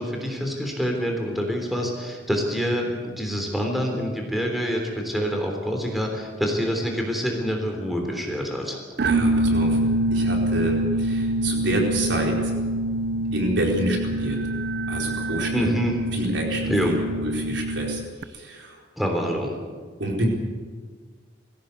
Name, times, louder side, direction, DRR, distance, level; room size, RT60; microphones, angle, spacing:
voice 1, 0.0-8.8 15.5-15.9 16.7-17.0 19.0-19.5, equal, ahead, 2 dB, 3.4 m, -26 dB
sound 1, 9.0-18.2, right 1 dB, 60° right, 0.7 m, -25 dB
voice 2, 9.0-9.8 10.1-12.5 13.3-14.4 14.9-15.7 16.1-18.8 20.0-20.3, right 1 dB, 75° right, 0 dB, 4.4 m, -28 dB
20.5 x 16.0 x 8.2 m, 1.5 s
head